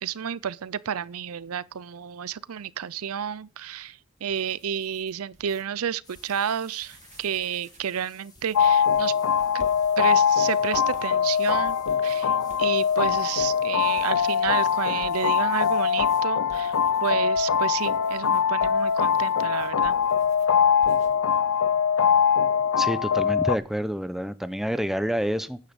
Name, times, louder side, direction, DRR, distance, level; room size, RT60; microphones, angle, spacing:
voice 1, 0.0-9.1 9.5-9.6 10.0-11.8 12.0-12.3 12.6-16.7 17.0-20.0, right 8 dB, 85° right, 0.5 m, -31 dB
sound 1, 4.1-5.6 6.1-6.4 6.7-7.9 8.4-15.6 16.0-20.5 20.8-21.1, right 1 dB, 35° right, 2.1 m, -53 dB
sound 2, 6.0-16.2, left 3 dB, 20° left, 5.5 m, -56 dB
sound 3, 8.5-23.6, left 7 dB, 85° left, 0.5 m, -22 dB
voice 2, 22.8-25.6, equal, ahead, 0.7 m, -28 dB
10.5 x 10.0 x 6.9 m
head